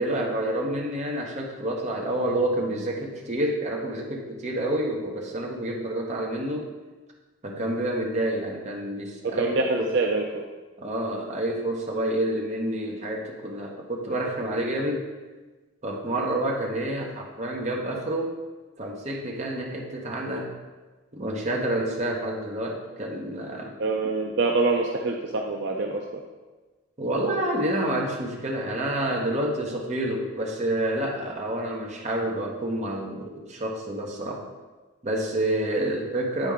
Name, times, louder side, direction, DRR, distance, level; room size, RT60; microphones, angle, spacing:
voice 1, 0.0-6.7 7.4-9.9 10.8-15.1 15.8-18.4 18.8-20.5 21.1-23.8 27.0-34.4 35.0-36.5, right 1 dB, 35° right, -1 dB, 1.0 m, -28 dB
voice 2, 9.2-10.4 23.8-26.0, right 3 dB, 60° right, 1 dB, 0.5 m, -25 dB
8.8 x 4.5 x 3.6 m, 1.3 s
head